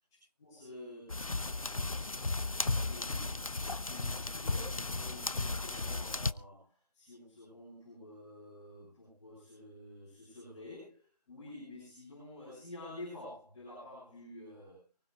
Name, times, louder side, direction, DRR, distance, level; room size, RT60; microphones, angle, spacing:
voice 1, 0.4-1.1 2.3-14.8, left 1 dB, 5° left, -13 dB, 6.6 m, -50 dB
sound 1, 1.1-6.3, left 3 dB, 55° left, 0.8 m, -35 dB
24.5 x 16.0 x 2.4 m, 0.34 s
figure-of-eight pair, 180°, 21 cm